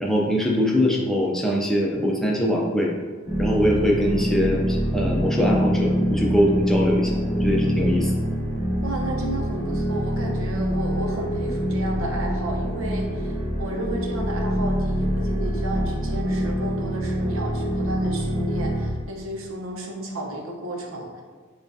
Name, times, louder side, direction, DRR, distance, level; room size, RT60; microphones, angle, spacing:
voice 1, 0.0-2.9 3.4-8.1, equal, ahead, -2 dB, 0.4 m, -22 dB
sound 1, 3.3-18.9, equal, 15° right, 1.2 m, -25 dB
voice 2, 8.8-21.2, right 1 dB, 75° right, 0 dB, 0.7 m, -33 dB
6.6 x 2.3 x 2.6 m, 1.5 s
head